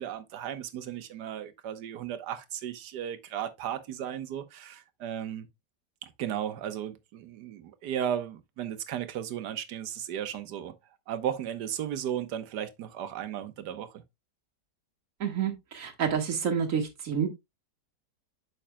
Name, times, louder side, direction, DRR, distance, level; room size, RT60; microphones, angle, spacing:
voice 1, 0.0-5.5 6.0-10.7 11.1-14.0, right 10 dB, 75° right, 1.5 m, -35 dB
voice 2, 15.2-17.3, right 7 dB, 50° right, 1.9 m, -29 dB
8.6 x 6.3 x 2.2 m
omnidirectional pair, 1.9 m